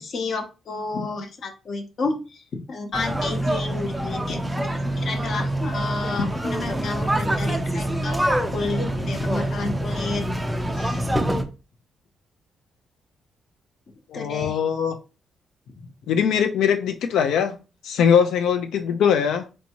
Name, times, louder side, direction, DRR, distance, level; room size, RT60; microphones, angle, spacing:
voice 1, 0.0-2.4 2.7-8.2 8.5-10.3 10.7-11.2 14.1-14.6 15.7-15.9, left 3 dB, 40° left, 0.7 m, -30 dB
sound 1, 2.9-11.4, right 1 dB, 5° right, 0.3 m, -26 dB
voice 2, 14.1-15.0 16.1-17.6 17.8-19.5, left 7 dB, 90° left, 0.3 m, -21 dB
4.4 x 2.7 x 2.9 m
cardioid pair, 175°, 0 cm